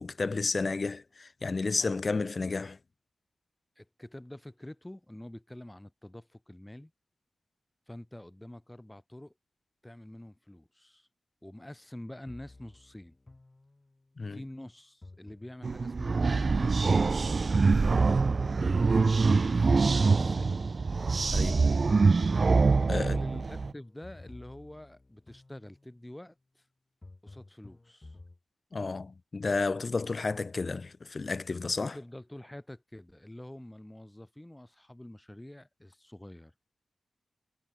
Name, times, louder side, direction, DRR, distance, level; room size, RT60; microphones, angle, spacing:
voice 1, 0.0-2.8 14.2-14.4 17.8-17.9 21.3-21.7 22.8-23.2 28.7-32.0, left 3 dB, 40° left, 0.5 m, -32 dB
voice 2, 3.8-6.9 7.9-9.3 9.8-11.1 11.4-13.2 14.3-17.1 17.8-20.7 22.7-26.6 27.2-28.2 31.8-36.5, left 1 dB, 10° left, 1.4 m, -47 dB
sound 1, 12.3-14.1 15.0-18.1 19.0-22.1 23.0-26.1 27.0-28.4, left 2 dB, 25° left, 1.3 m, -52 dB
sound 2, 15.6-23.7, right 4 dB, 45° right, 0.4 m, -24 dB
wide cardioid pair, 95°, 0 cm